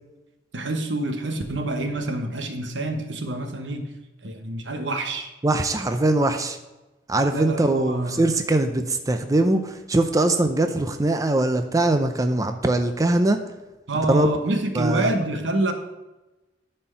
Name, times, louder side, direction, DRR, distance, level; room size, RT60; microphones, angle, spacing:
voice 1, 0.5-3.8 4.2-5.3 7.3-8.4 13.9-15.7, right 2 dB, 80° right, 6 dB, 1.2 m, -27 dB
voice 2, 5.4-6.6 7.1-13.4 14.1-14.3 14.8-15.1, right 2 dB, 20° right, 7 dB, 0.5 m, -21 dB
11.0 x 4.4 x 5.5 m, 1.0 s
head